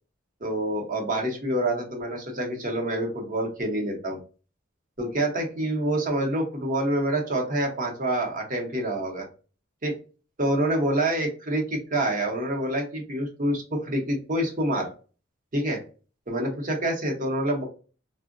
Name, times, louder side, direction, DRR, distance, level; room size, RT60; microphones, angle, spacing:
voice 1, 0.4-4.2 5.0-9.3 9.8-9.9 10.4-14.9 15.5-15.8 16.3-17.6, right 1 dB, 40° right, 1 dB, 0.8 m, -27 dB
3.5 x 2.1 x 2.4 m, 0.36 s
head